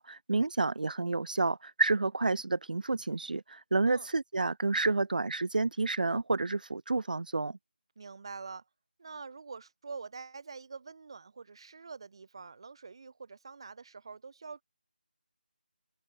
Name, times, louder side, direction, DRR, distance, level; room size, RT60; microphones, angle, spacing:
voice 1, 0.0-7.6, right 3 dB, 55° right, 0.5 m, -30 dB
voice 2, 8.0-8.7 9.0-14.6, right 4 dB, 30° right, 4.4 m, -45 dB
figure-of-eight pair, 175°, 5 cm